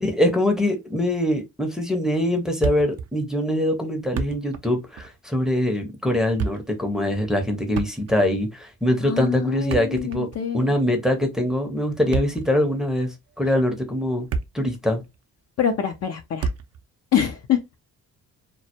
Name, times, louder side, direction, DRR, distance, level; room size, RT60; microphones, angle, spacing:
voice 1, 0.0-10.3 10.5-14.3 14.5-15.0, left 1 dB, ahead, 0.7 m, -23 dB
Thump thud, 2.6-3.1 3.4-3.5 4.0-4.7 5.0-5.2 6.1-6.8 7.7-8.4 9.5-10.5 11.9-12.6 13.3-13.4 14.0-14.8 15.0-15.2 16.4-16.8, right 5 dB, 40° right, 0.5 m, -29 dB
voice 2, 9.0-10.7 15.6-16.5 17.1-17.8, left 9 dB, 40° left, 0.5 m, -25 dB
2.2 x 2.0 x 2.8 m
hypercardioid pair, 55°, 40 cm